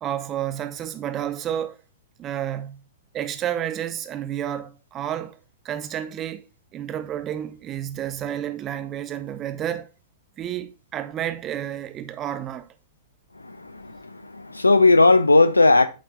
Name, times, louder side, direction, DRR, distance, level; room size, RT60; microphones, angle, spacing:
voice 1, 0.0-1.8 2.2-2.8 3.1-5.4 5.6-6.5 6.7-9.9 10.4-12.7, right 10 dB, 25° right, 0.7 m, -30 dB
voice 2, 13.4-15.9, left 3 dB, 85° left, 0.6 m, -17 dB
8.7 x 3.3 x 3.9 m
figure-of-eight pair, 105°, 0 cm